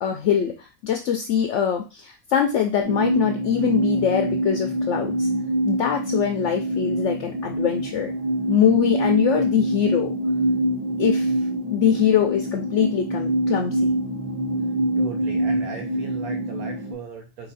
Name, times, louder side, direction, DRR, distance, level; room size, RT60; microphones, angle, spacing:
voice 1, 0.0-5.3 5.6-8.1 8.5-10.1 11.0-11.3 11.7-13.9, left 9 dB, 65° left, 5 dB, 0.8 m, -23 dB
sound 1, 2.8-16.9, right 1 dB, 5° right, 0.7 m, -25 dB
voice 2, 15.0-17.5, right 4 dB, 80° right, 1 dB, 1.3 m, -37 dB
4.9 x 2.7 x 4.0 m, 0.30 s
omnidirectional pair, 1.5 m